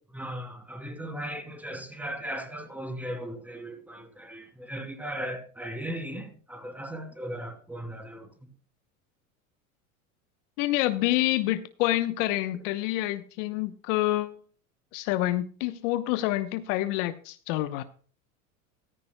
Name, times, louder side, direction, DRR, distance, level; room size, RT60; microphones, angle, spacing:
voice 1, 0.1-8.3, right 1 dB, 5° right, 2.8 m, -37 dB
voice 2, 10.6-14.4 14.9-17.8, left 16 dB, 60° left, 1.0 m, -27 dB
14.5 x 14.0 x 2.2 m
hypercardioid pair, 95°, 42 cm